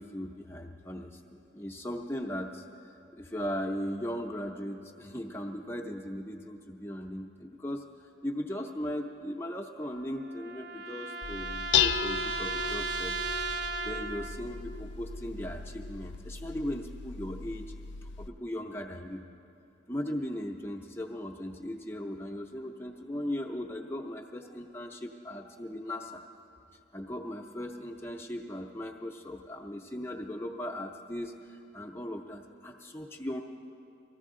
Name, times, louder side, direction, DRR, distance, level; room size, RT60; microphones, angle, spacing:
voice 1, 0.0-13.1 13.5-17.7 18.0-19.2 19.9-26.2 26.9-33.4, equal, 15° left, 2 dB, 0.5 m, -38 dB
sound 1, 9.8-14.6, right 3 dB, 55° right, 0.5 m, -36 dB
Dishes pots and pans, 11.2-18.3, left 8 dB, 70° left, 0.4 m, -34 dB
19.0 x 14.5 x 3.7 m, 2.9 s
head